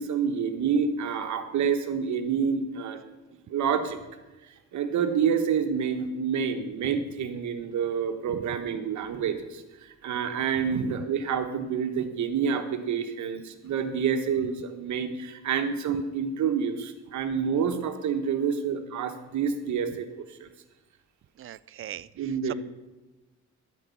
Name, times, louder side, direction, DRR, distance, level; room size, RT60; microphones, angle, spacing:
voice 1, 0.0-3.0 3.5-4.0 4.4-20.5 22.2-22.5, right 7 dB, 70° right, 7 dB, 1.4 m, -28 dB
voice 2, 10.7-11.1 21.4-22.5, right 11 dB, 45° right, 19 dB, 0.4 m, -38 dB
12.0 x 5.3 x 8.4 m, 1.1 s
cardioid pair, 90°, 30 cm